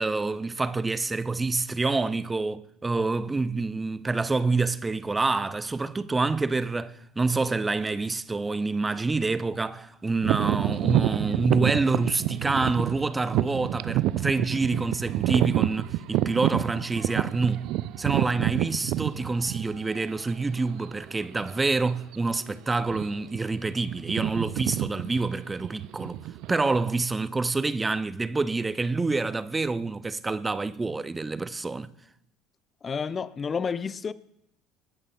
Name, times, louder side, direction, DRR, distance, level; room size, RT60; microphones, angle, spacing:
voice 1, 0.0-17.7 18.0-26.2 26.5-31.9, right 3 dB, 20° right, 0.7 m, -27 dB
sound 1, 10.2-20.0 20.7-20.8 21.4-21.6 21.9-22.2 22.8-23.4 23.6-27.0, right 15 dB, 55° right, 0.4 m, -28 dB
voice 2, 32.8-34.1, left 6 dB, 30° left, 0.5 m, -30 dB
25.5 x 12.5 x 2.4 m
figure-of-eight pair, 60°, 0 cm